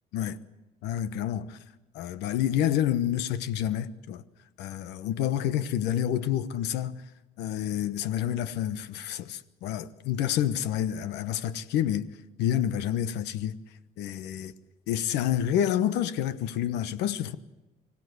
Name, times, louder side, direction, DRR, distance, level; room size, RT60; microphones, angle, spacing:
voice 1, 0.8-1.6 1.9-4.2 4.6-7.0 7.4-12.1 12.4-13.6 14.0-14.5 14.9-17.4, left 10 dB, 85° left, 1.1 m, -28 dB
25.0 x 16.5 x 8.2 m
cardioid pair, 110°, 17 cm